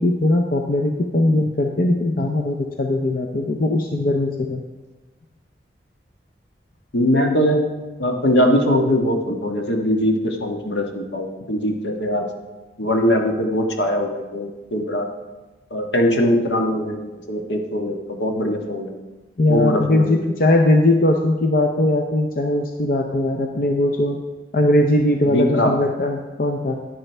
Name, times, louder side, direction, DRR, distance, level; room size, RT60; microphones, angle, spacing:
voice 1, 0.0-4.6 19.4-24.2 24.5-26.7, left 1 dB, 50° left, 3 dB, 0.7 m, -19 dB
voice 2, 6.9-7.7 8.0-12.3 12.8-15.1 15.7-19.0 19.5-20.3 25.2-25.7, equal, 80° left, 2 dB, 1.5 m, -21 dB
10.5 x 10.0 x 3.4 m, 1.2 s
head